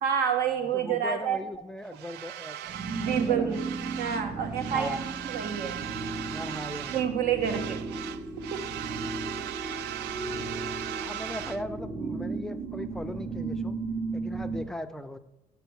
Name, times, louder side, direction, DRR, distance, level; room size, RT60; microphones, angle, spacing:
voice 1, 0.0-1.4 3.0-3.6 4.0-5.0 5.2-5.8 6.9-7.8 8.5-8.7, right 8 dB, 65° right, 7 dB, 1.2 m, -28 dB
voice 2, 0.7-3.6 4.7-5.0 6.3-7.1 11.0-13.8 14.1-15.2, left 1 dB, 5° left, 7 dB, 0.5 m, -39 dB
sound 1, 1.9-4.3 4.5-7.1 7.4-11.6, right 12 dB, 80° right, 0.4 m, -38 dB
sound 2, 2.6-14.6, right 3 dB, 35° right, 0.9 m, -35 dB
6.8 x 6.1 x 6.2 m, 0.92 s
cardioid pair, 110°, 17 cm